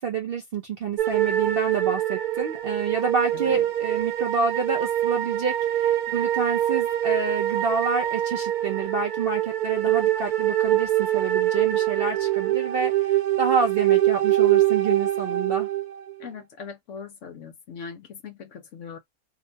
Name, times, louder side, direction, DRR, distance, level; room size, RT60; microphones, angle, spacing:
voice 1, 0.0-15.7, right 5 dB, 60° right, 0.6 m, -28 dB
sound 1, 1.0-16.1, right 13 dB, 85° right, 1.1 m, -24 dB
voice 2, 3.3-3.6 16.2-19.0, left 6 dB, 65° left, 0.9 m, -40 dB
2.8 x 2.1 x 2.6 m
omnidirectional pair, 1.5 m